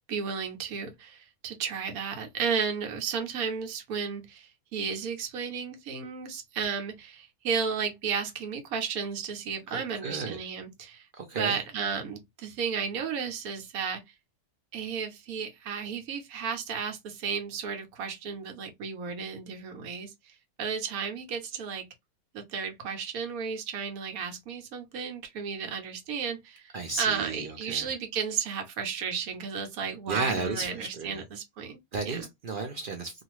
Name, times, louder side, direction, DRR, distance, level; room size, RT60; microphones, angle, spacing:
voice 1, 0.1-11.1 11.4-14.0 14.7-21.8 22.3-26.7 27.0-31.8 32.1-32.2, right 6 dB, 85° right, 1.2 m, -33 dB
voice 2, 9.7-10.4 11.1-11.6 26.7-27.9 30.1-31.2 31.9-33.2, right 4 dB, 60° right, 0.5 m, -34 dB
2.5 x 2.4 x 2.9 m
omnidirectional pair, 1.5 m